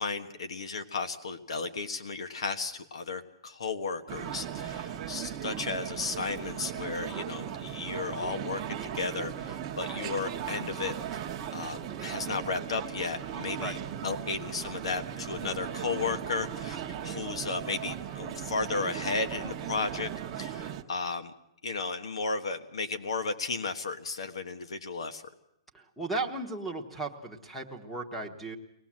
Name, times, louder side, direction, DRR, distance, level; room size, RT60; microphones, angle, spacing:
voice 1, 0.0-20.1 20.4-21.3 21.6-25.2, left 4 dB, 80° left, 8 dB, 1.4 m, -34 dB
sound 1, 4.1-20.8, right 9 dB, 20° right, 1.0 m, -37 dB
voice 2, 25.7-28.6, right 2 dB, ahead, 2 dB, 1.1 m, -36 dB
23.5 x 19.0 x 7.5 m, 0.79 s
hypercardioid pair, 175°, 3 cm